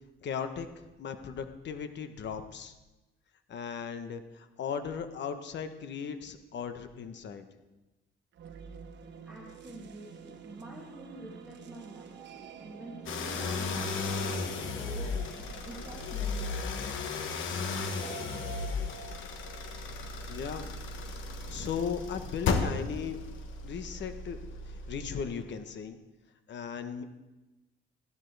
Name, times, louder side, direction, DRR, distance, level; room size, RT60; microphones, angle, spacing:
voice 1, 0.2-2.7 3.5-7.5 20.3-20.7 21.5-23.2 23.6-24.4 24.9-26.0 26.5-27.0, left 7 dB, 65° left, 9 dB, 1.1 m, -37 dB
sound 1, 8.3-20.5, right 6 dB, 65° right, 1.2 m, -49 dB
voice 2, 9.3-16.9, right 2 dB, 5° right, -5 dB, 2.3 m, -47 dB
sound 2, 13.1-25.4, left 4 dB, 80° left, 1.3 m, -35 dB
15.0 x 12.0 x 3.4 m, 1.1 s
cardioid pair, 90°, 20 cm